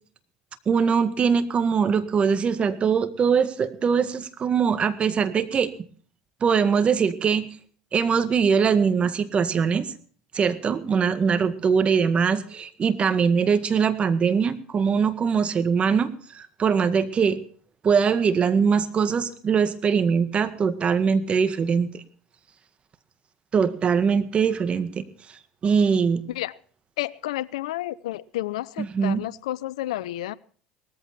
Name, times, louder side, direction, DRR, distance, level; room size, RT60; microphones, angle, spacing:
voice 1, 0.6-5.7 6.4-7.5 7.9-9.9 10.3-17.4 17.8-22.0 23.5-26.2 28.8-29.2, right 6 dB, 35° right, 12 dB, 1.8 m, -22 dB
voice 2, 27.0-30.3, left 15 dB, 80° left, 21 dB, 0.6 m, -31 dB
18.5 x 14.5 x 4.3 m, 0.43 s
hypercardioid pair, 80°, 3 cm